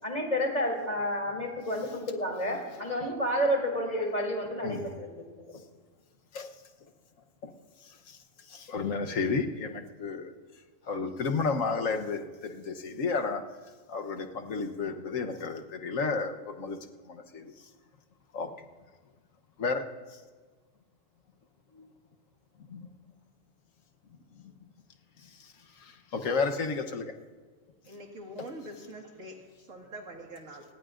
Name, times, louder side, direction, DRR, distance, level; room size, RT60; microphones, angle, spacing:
voice 1, 0.0-5.5, equal, 30° left, 1 dB, 3.1 m, -30 dB
voice 2, 4.6-5.0 6.3-6.5 7.4-7.5 8.5-10.3 10.9-13.4 13.9-16.8 17.1-17.5 18.3-18.5 19.6-19.8 22.7-22.8 26.1-27.1, left 4 dB, 80° left, 5 dB, 1.4 m, -31 dB
voice 3, 27.8-30.6, right 1 dB, 85° right, 1 dB, 2.3 m, -44 dB
29.5 x 18.5 x 2.5 m, 1.4 s
omnidirectional pair, 1.3 m